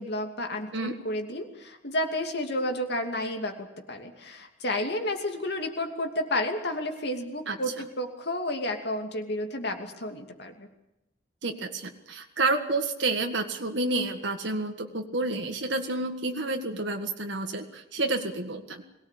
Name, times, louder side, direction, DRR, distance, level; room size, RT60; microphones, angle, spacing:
voice 1, 0.0-10.7, left 1 dB, 60° left, 4 dB, 2.7 m, -31 dB
voice 2, 11.4-18.8, right 2 dB, 65° right, 4 dB, 1.8 m, -29 dB
22.5 x 17.5 x 8.5 m, 0.89 s
head